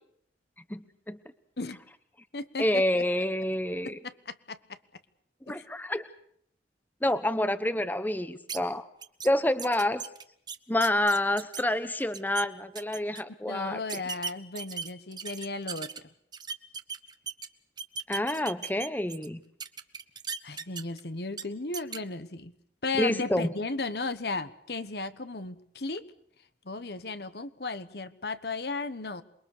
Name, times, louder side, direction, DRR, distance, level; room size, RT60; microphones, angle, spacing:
voice 1, 0.7-1.2 2.6-4.0 5.5-6.0 7.0-8.9 9.2-10.0 10.7-13.8 18.1-19.4 23.0-23.5, left 1 dB, 10° left, 12 dB, 0.9 m, -28 dB
voice 2, 2.3-3.0 3.8-4.8 5.5-5.6 13.5-15.9 20.4-22.5 22.8-26.1 26.6-29.2, left 3 dB, 65° left, 12 dB, 1.3 m, -35 dB
sound 1, 8.5-8.6 9.0-9.3 9.6-11.6 12.0-12.4 12.7-13.2 13.9-16.0 16.3-17.5 17.8-19.3 19.6-21.0 21.3-21.4 21.7-22.0, right 6 dB, 25° right, 1.0 m, -37 dB
27.5 x 22.0 x 6.7 m, 0.68 s
head